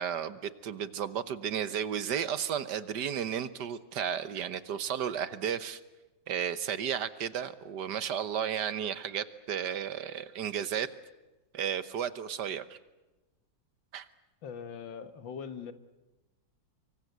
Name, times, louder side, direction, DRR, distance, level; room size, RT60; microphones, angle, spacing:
voice 1, 0.0-5.8 6.3-10.9 11.5-12.8 13.9-14.1, right 8 dB, 65° right, 14 dB, 1.6 m, -33 dB
voice 2, 14.4-15.7, left 7 dB, 80° left, 11 dB, 2.1 m, -41 dB
25.0 x 24.0 x 8.0 m, 1.1 s
omnidirectional pair, 2.0 m